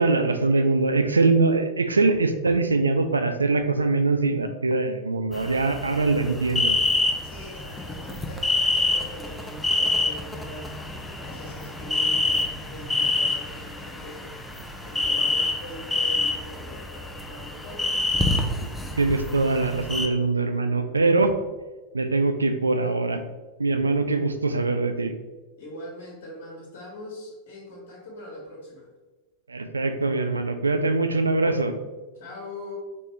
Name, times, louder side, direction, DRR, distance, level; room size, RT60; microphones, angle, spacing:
voice 1, 0.0-6.8 19.0-21.3 21.9-23.2 23.6-25.1 29.5-31.7, right 3 dB, 75° right, 8 dB, 0.3 m, -23 dB
sound 1, 5.3-20.1, left 2 dB, 5° left, 0.5 m, -27 dB
voice 2, 7.2-10.7 11.2-18.7 25.6-28.9 32.1-32.8, left 1 dB, 55° left, -3 dB, 1.4 m, -42 dB
5.1 x 3.2 x 3.1 m, 1.2 s
figure-of-eight pair, 90°, 0 cm